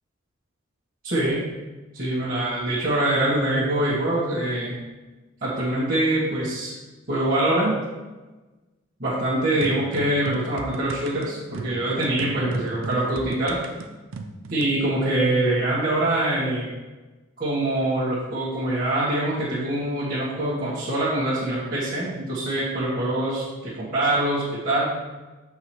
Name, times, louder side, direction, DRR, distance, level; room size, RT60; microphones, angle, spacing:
voice 1, 1.0-1.5 1.9-4.8 5.4-6.7 7.1-7.8 9.0-13.6 14.5-16.7 17.4-24.9, right 1 dB, 45° right, -12 dB, 1.6 m, -24 dB
sound 1, 9.6-14.8, right 3 dB, 85° right, 0.5 m, -37 dB
8.1 x 4.8 x 3.0 m, 1.2 s
head